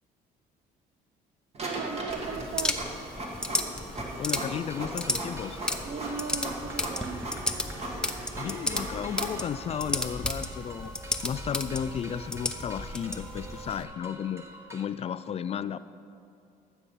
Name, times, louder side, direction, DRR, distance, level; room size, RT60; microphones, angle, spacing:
Printer, 1.5-9.5, right 1 dB, 40° right, 1.8 m, -38 dB
voice 1, 1.6-2.9 5.8-7.3, right 6 dB, 60° right, 11 dB, 0.7 m, -37 dB
sound 1, 2.1-13.8, left 1 dB, 5° left, 0.7 m, -34 dB
voice 2, 4.2-5.6 8.4-11.0 11.2-15.8, left 8 dB, 35° left, 14 dB, 0.3 m, -34 dB
sound 2, 4.5-14.9, right 1 dB, 15° right, 1.0 m, -46 dB
14.5 x 6.8 x 5.7 m, 2.5 s
cardioid pair, 110°, 17 cm